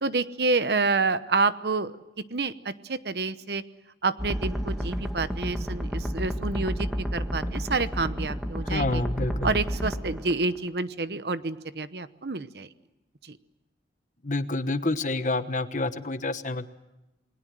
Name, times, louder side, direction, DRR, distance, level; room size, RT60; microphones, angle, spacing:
voice 1, 0.0-1.9 2.3-3.6 4.0-9.0 9.4-12.7 13.3-13.4, right 3 dB, 65° right, 13 dB, 1.0 m, -28 dB
sound 1, 4.2-10.7, equal, ahead, 1.6 m, -31 dB
voice 2, 8.6-9.5 14.2-16.7, left 2 dB, 45° left, 11 dB, 1.2 m, -28 dB
29.0 x 21.0 x 7.6 m, 0.97 s
head